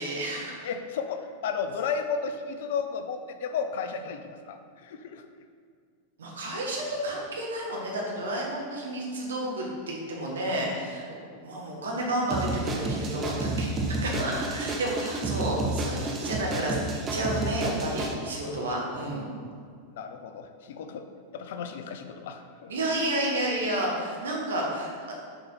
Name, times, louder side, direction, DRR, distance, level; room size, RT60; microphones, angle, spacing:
voice 1, 0.0-0.6 6.2-11.0 11.4-16.8 17.1-19.3 22.7-25.1, right 1 dB, 65° right, -3 dB, 1.6 m, -31 dB
voice 2, 0.6-4.2 4.5-5.2 11.1-11.3 18.3-18.7 19.9-21.1 21.3-22.7, left 6 dB, 55° left, 7 dB, 0.5 m, -33 dB
sound 1, 12.3-18.1, right 2 dB, 25° right, 0.8 m, -30 dB
6.8 x 4.0 x 5.5 m, 2.1 s
figure-of-eight pair, 90°, 0 cm